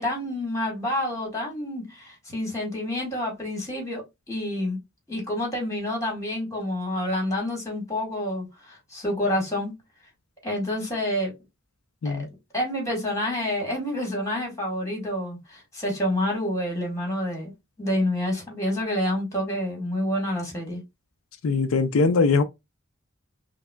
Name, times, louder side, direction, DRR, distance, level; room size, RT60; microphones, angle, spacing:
voice 1, 0.0-4.8 5.1-9.7 10.4-11.3 12.0-12.2 12.5-17.5 17.8-20.8, left 1 dB, 15° left, 1.5 m, -28 dB
voice 2, 21.4-22.4, left 4 dB, 85° left, 0.4 m, -21 dB
5.4 x 2.0 x 2.3 m
head